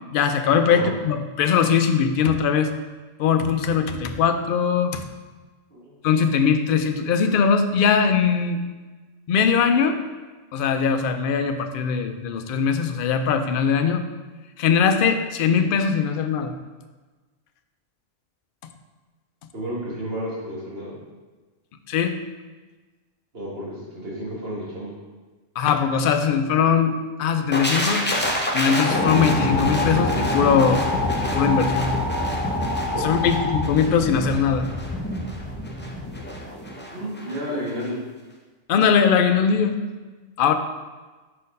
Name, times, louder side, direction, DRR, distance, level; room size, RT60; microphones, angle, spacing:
voice 1, 0.1-2.7 3.2-5.0 6.0-8.6 9.3-10.0 10.5-14.1 14.6-16.5 21.9-22.2 25.6-28.0 28.5-30.8 31.3-31.9 33.0-34.7 38.7-39.8 40.4-40.5, left 6 dB, 60° left, 7 dB, 0.6 m, -20 dB
voice 2, 19.5-21.0 23.3-24.9 32.9-33.3 36.9-38.0, equal, 50° right, -5 dB, 1.8 m, -32 dB
sound 1, 27.5-37.4 37.7-37.9, equal, 10° left, 0.5 m, -27 dB
sound 2, 28.6-33.6, left 3 dB, 70° right, 2.0 m, -28 dB
5.5 x 4.3 x 5.3 m, 1.3 s
omnidirectional pair, 1.3 m